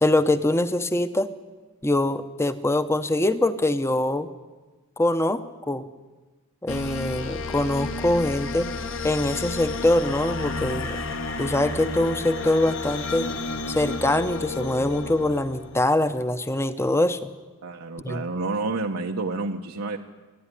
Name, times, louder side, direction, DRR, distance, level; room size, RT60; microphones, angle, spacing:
voice 1, 0.0-1.3 1.8-4.3 5.0-5.9 6.6-8.7 9.0-11.0 11.4-13.3 13.7-17.3 18.0-18.2, left 1 dB, 10° left, 11 dB, 0.7 m, -23 dB
sound 1, 6.7-16.1, left 3 dB, 60° left, 1.4 m, -32 dB
voice 2, 17.6-20.0, right 3 dB, 90° right, 2 dB, 1.0 m, -29 dB
28.5 x 11.0 x 9.9 m, 1.3 s
head